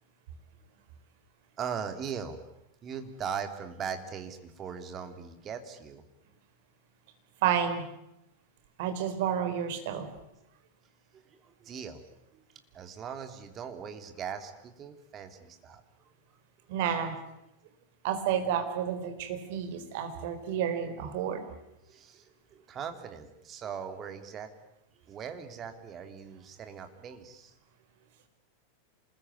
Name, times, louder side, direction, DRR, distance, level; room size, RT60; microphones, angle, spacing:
voice 1, 1.6-2.4 2.8-6.0 11.1-12.0 12.7-15.8 21.9-22.2 22.5-24.5 25.1-27.5, right 7 dB, 25° right, 7 dB, 3.2 m, -39 dB
voice 2, 7.4-7.9 8.8-10.1 16.7-17.2 18.0-21.4, right 8 dB, 50° right, 7 dB, 4.3 m, -30 dB
27.5 x 21.0 x 9.6 m, 0.87 s
figure-of-eight pair, 90°, 0 cm